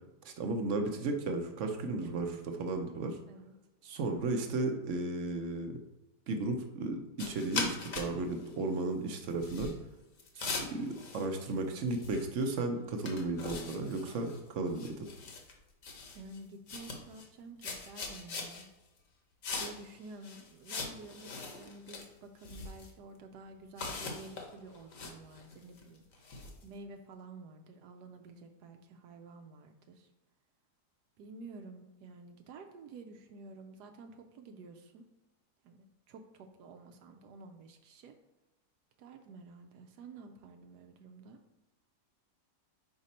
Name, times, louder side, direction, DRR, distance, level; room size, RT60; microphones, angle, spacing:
voice 1, 0.2-3.2 3.8-5.8 6.3-9.7 10.4-15.1, right 2 dB, 60° right, 5 dB, 0.8 m, -34 dB
voice 2, 2.0-2.5 3.3-3.5 16.1-18.7 19.6-26.2 26.6-30.1 31.2-35.0 35.6-38.1 39.0-41.4, right 3 dB, 75° right, 5 dB, 1.1 m, -51 dB
sound 1, 7.2-8.1 8.4-8.5 9.3-9.7 10.2-11.6 11.9-12.4 12.7-12.8 13.0-14.4 14.7-15.5 15.8-16.4 16.7-17.3 17.6-18.6 19.4-19.9 20.2-22.1 22.4-22.9 23.8-26.6, left 4 dB, 55° left, 1.2 m, -41 dB
5.1 x 5.1 x 4.2 m, 1.0 s
omnidirectional pair, 1.8 m